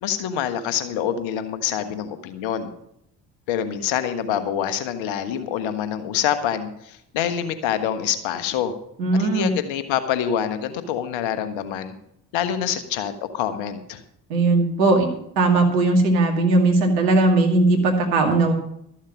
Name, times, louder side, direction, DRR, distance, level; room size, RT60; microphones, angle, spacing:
voice 1, 0.0-2.7 3.5-8.7 9.1-11.9 12.3-14.0, left 9 dB, 65° left, 11 dB, 1.5 m, -26 dB
voice 2, 9.0-9.5 14.3-15.1 15.4-18.5, right 2 dB, 75° right, 2 dB, 2.4 m, -18 dB
13.0 x 7.3 x 7.3 m, 0.74 s
figure-of-eight pair, 45°, 49 cm